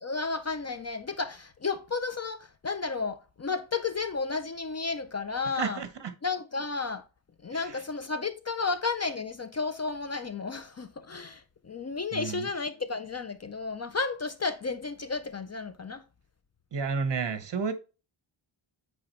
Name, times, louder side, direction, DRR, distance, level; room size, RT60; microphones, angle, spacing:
voice 1, 0.0-5.8 6.2-7.1 7.4-16.0, left 4 dB, 35° left, 0.4 m, -32 dB
voice 2, 5.5-6.1 12.1-12.5 16.7-17.7, right 5 dB, 60° right, 1.1 m, -31 dB
8.5 x 4.5 x 3.0 m
wide cardioid pair, 175°, 49 cm